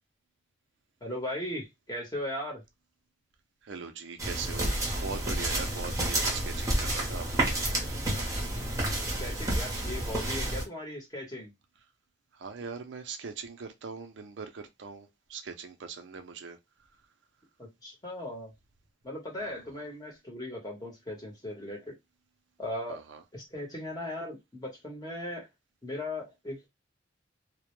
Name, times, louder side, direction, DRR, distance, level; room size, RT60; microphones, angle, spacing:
voice 1, 1.0-2.6 9.2-11.5 17.6-18.5 19.0-21.9 22.6-23.0 23.3-25.5 25.8-26.7, left 1 dB, 20° left, 0.9 m, -38 dB
voice 2, 3.6-7.6 12.3-16.6 22.9-23.2, right 5 dB, 65° right, 0.4 m, -41 dB
sound 1, 4.2-10.6, right 1 dB, 15° right, 0.7 m, -30 dB
2.1 x 2.1 x 3.0 m
head